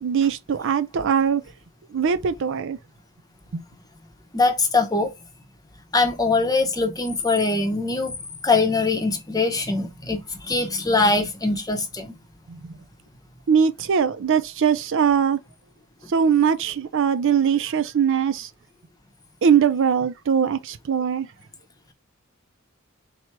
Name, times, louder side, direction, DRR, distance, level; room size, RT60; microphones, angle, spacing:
voice 1, 0.0-1.4 1.9-2.8 3.5-3.6 12.5-12.8 13.5-15.4 16.1-18.5 19.4-21.3, right 7 dB, 60° right, 0.4 m, -21 dB
voice 2, 4.3-5.1 5.9-8.2 8.4-12.2, left 3 dB, 15° left, 0.7 m, -22 dB
4.4 x 2.2 x 4.5 m
head